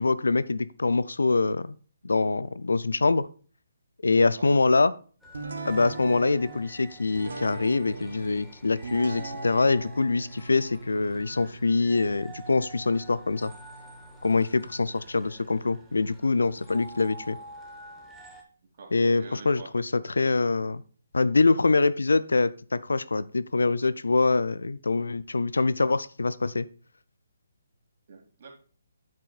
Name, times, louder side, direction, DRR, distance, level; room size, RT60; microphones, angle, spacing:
voice 1, 0.0-1.8 2.0-3.3 4.0-5.0 5.7-13.5 14.2-17.4 18.9-20.8 21.1-26.7, left 3 dB, 80° left, 17 dB, 0.4 m, -24 dB
sound 1, 5.2-18.4, right 1 dB, 5° right, 1.2 m, -48 dB
sound 2, 5.3-16.8, right 2 dB, 70° right, 1.1 m, -42 dB
voice 2, 18.6-19.7 28.1-28.6, right 4 dB, 50° right, 1 dB, 2.5 m, -47 dB
9.0 x 7.6 x 2.4 m, 0.40 s
figure-of-eight pair, 145°, 0 cm